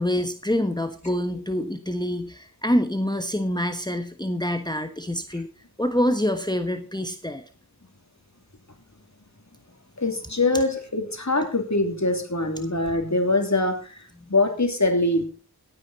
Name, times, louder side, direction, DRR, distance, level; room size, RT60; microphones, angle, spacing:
voice 1, 0.0-5.5 5.8-7.4 14.2-14.3, equal, 10° left, 8 dB, 1.2 m, -26 dB
voice 2, 10.0-15.3, left 2 dB, 45° left, 5 dB, 2.9 m, -23 dB
16.5 x 9.3 x 4.2 m, 0.36 s
wide cardioid pair, 40°, 38 cm